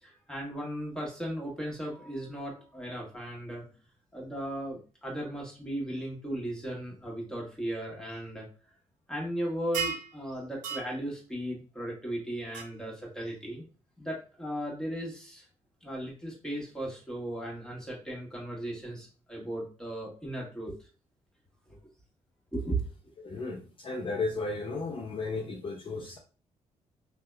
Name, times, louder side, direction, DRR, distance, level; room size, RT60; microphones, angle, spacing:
voice 1, 0.0-3.7 4.1-8.5 9.1-13.6 14.0-15.4 15.8-20.8 21.7-21.8 22.5-22.8, right 1 dB, 5° left, -3 dB, 1.2 m, -36 dB
sound 1, 9.7-10.1 10.6-10.9 12.5-12.6, right 6 dB, 80° right, 0.4 m, -32 dB
voice 2, 23.2-26.2, left 3 dB, 40° left, 2 dB, 0.4 m, -34 dB
2.6 x 2.1 x 2.2 m, 0.35 s
supercardioid pair, 65°, 13 cm